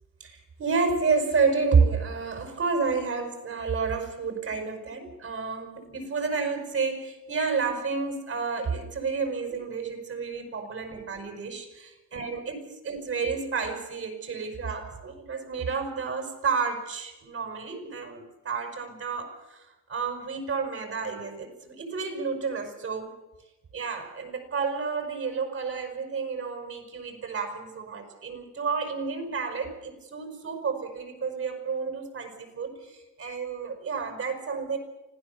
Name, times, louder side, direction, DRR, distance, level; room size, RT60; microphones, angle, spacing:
voice 1, 0.2-23.1 23.7-34.8, right 5 dB, 50° right, 5 dB, 5.8 m, -30 dB
25.5 x 16.0 x 7.0 m, 1.0 s
cardioid pair, 90°, 30 cm